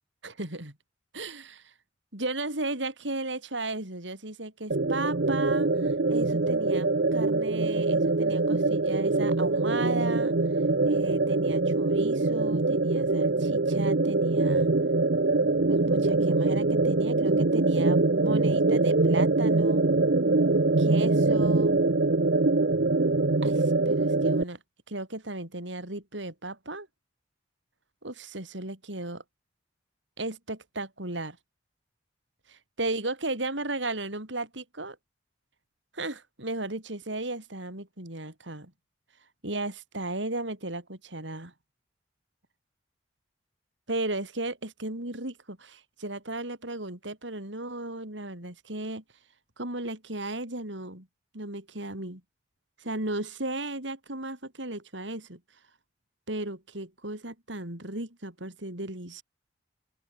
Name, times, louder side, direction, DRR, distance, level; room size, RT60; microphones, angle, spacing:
voice 1, 0.2-0.8 1.1-1.7 2.1-10.4 10.8-14.7 15.7-19.8 20.8-21.8 23.4-24.6 24.9-26.9 28.0-29.2 30.2-31.4 32.5-35.0 35.9-38.7 39.4-41.5 43.9-49.0 49.6-51.1 51.3-52.2 52.8-55.4 56.3-59.2, right 2 dB, 85° right, 6.0 m, -35 dB
sound 1, 4.7-24.4, right 3 dB, 60° right, 0.9 m, -24 dB
open air
head